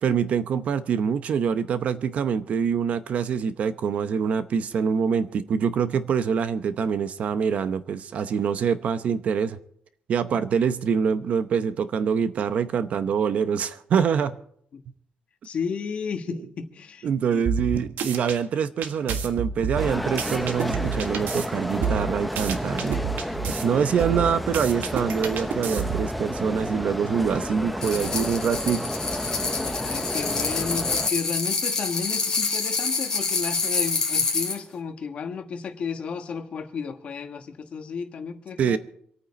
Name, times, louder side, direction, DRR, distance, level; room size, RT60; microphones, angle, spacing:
voice 1, 0.0-9.6 10.1-14.4 17.0-23.0 23.6-28.9 38.6-38.8, right 7 dB, 50° right, 0.7 m, -25 dB
voice 2, 15.4-17.4 29.6-38.8, left 5 dB, 40° left, 1.3 m, -33 dB
sound 1, 17.4-18.4 18.8-21.5 21.8-23.6 24.0-26.1, right 6 dB, 90° right, 1.5 m, -29 dB
sound 2, 19.8-31.1, equal, ahead, 0.6 m, -31 dB
sound 3, 27.8-34.6, left 4 dB, 20° left, 3.4 m, -27 dB
27.0 x 9.2 x 4.2 m
cardioid pair, 170°, 3 cm